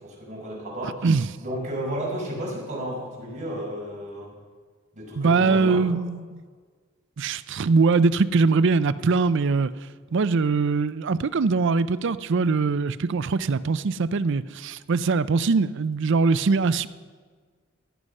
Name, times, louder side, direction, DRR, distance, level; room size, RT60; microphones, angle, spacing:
voice 1, 0.0-1.1 1.4-4.3 4.9-5.9, equal, 40° right, 5.3 m, -32 dB
voice 2, 5.2-6.4 7.2-9.7 10.1-16.9, right 4 dB, 60° right, 0.5 m, -22 dB
16.5 x 11.0 x 5.4 m
head